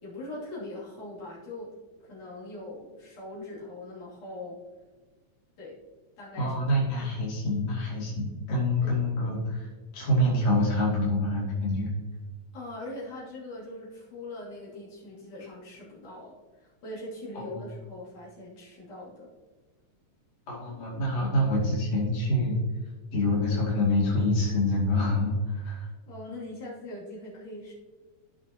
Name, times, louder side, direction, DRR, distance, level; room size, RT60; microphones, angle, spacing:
voice 1, 0.0-1.7 2.0-4.6 5.6-5.8 6.2-6.5 8.8-9.0 12.5-16.3 16.6-19.3 21.2-21.9 26.1-27.7, left 1 dB, 80° left, -8 dB, 4.4 m, -41 dB
voice 2, 6.4-9.7 9.9-11.9 17.4-17.7 20.5-22.6 23.1-25.9, left 1 dB, 60° left, -6 dB, 3.9 m, -26 dB
15.0 x 6.5 x 2.9 m, 1.3 s
omnidirectional pair, 3.4 m